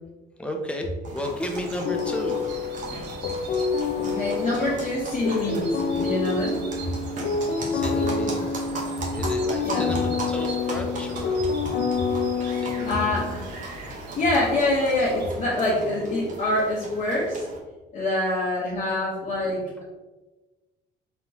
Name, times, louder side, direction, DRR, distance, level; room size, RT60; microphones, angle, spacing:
voice 1, 0.4-2.8 3.6-4.5 7.6-8.6 9.1-11.5 12.5-13.2 18.2-18.3 19.6-19.8, equal, 5° left, 2 dB, 0.7 m, -34 dB
sound 1, 1.0-17.6, right 2 dB, 50° right, 1.1 m, -38 dB
sound 2, 1.5-15.3, right 3 dB, 80° right, 0.8 m, -42 dB
sound 3, 1.8-13.6, left 5 dB, 60° left, 0.5 m, -28 dB
voice 2, 4.0-6.6 9.0-9.1 9.6-9.9 12.8-13.4 14.2-17.5 17.9-19.8, left 1 dB, 45° left, -6 dB, 1.1 m, -25 dB
4.0 x 3.7 x 2.9 m, 1.2 s
cardioid pair, 110°, 17 cm